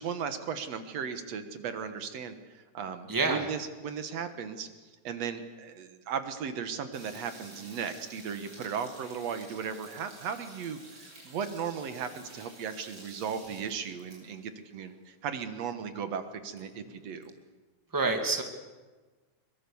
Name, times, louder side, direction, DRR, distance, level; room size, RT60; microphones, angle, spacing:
voice 1, 0.0-4.7 5.0-17.3, right 7 dB, 65° right, 9 dB, 2.4 m, -36 dB
voice 2, 3.1-3.5 17.9-18.4, right 3 dB, 10° right, 4 dB, 1.6 m, -27 dB
sound 1, 6.9-14.4 14.8-14.9 15.1-15.2 15.8-15.9 16.2-17.2, right 1 dB, 40° right, 7.2 m, -51 dB
23.0 x 21.5 x 7.1 m, 1.3 s
omnidirectional pair, 3.3 m